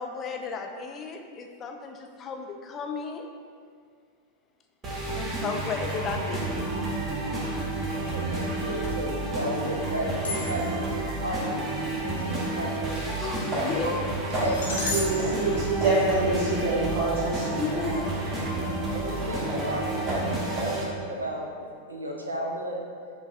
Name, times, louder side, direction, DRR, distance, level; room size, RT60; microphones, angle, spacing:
voice 1, 0.0-3.3 5.1-6.7 13.2-14.2 17.6-18.1, left 5 dB, 25° left, 4 dB, 0.3 m, -34 dB
sound 1, 4.8-20.8, right 2 dB, 25° right, 0.8 m, -30 dB
voice 2, 7.9-10.9 11.2-11.4 11.9-13.3 13.8-13.9 14.4-14.7 18.9-22.8, equal, 80° right, 0 dB, 0.5 m, -34 dB
sound 2, 10.2-10.9 14.3-16.6, left 2 dB, 65° left, 0.8 m, -35 dB
sound 3, 13.5-13.9 14.3-14.8 15.2-15.4 15.8-19.8 20.1-20.8, right 1 dB, 40° right, 1.4 m, -35 dB
voice 3, 14.9-17.5, right 2 dB, 60° right, -10 dB, 0.9 m, -25 dB
5.6 x 2.3 x 2.5 m, 2.1 s
figure-of-eight pair, 90°, 0 cm